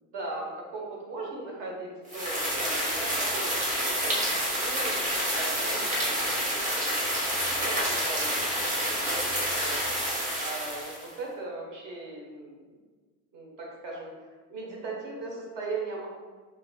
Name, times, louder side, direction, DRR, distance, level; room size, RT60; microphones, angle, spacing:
voice 1, 0.1-5.1 5.4-9.8 10.4-12.6 13.3-14.1 14.5-16.1, right 3 dB, 50° right, -2 dB, 1.2 m, -39 dB
sound 1, 2.1-11.1, equal, 20° right, 0.7 m, -28 dB
5.6 x 2.8 x 2.3 m, 1.4 s
cardioid pair, 160°, 39 cm